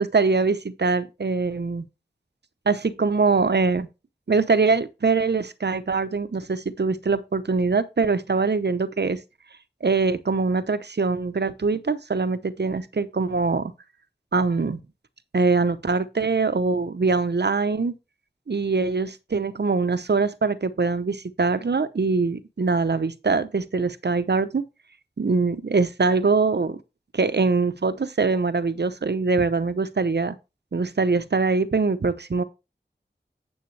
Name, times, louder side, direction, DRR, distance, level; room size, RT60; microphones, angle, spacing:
voice 1, 0.0-1.9 2.7-3.9 4.3-9.2 9.8-13.7 14.3-14.8 15.3-17.9 18.5-24.6 25.2-26.8 27.1-30.4 30.7-32.4, right 4 dB, 70° right, 0.8 m, -23 dB
9.5 x 7.3 x 3.3 m
wide cardioid pair, 55°, 18 cm